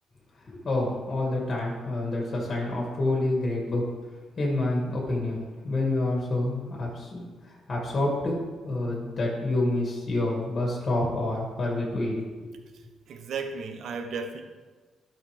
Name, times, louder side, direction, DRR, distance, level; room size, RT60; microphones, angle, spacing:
voice 1, 0.6-3.8 4.4-5.4 5.6-8.4 8.6-12.2, left 2 dB, 40° left, -2 dB, 2.4 m, -28 dB
voice 2, 12.7-14.4, right 4 dB, 65° right, 6 dB, 1.0 m, -35 dB
12.0 x 5.6 x 3.5 m, 1.4 s
cardioid pair, 90°, 0 cm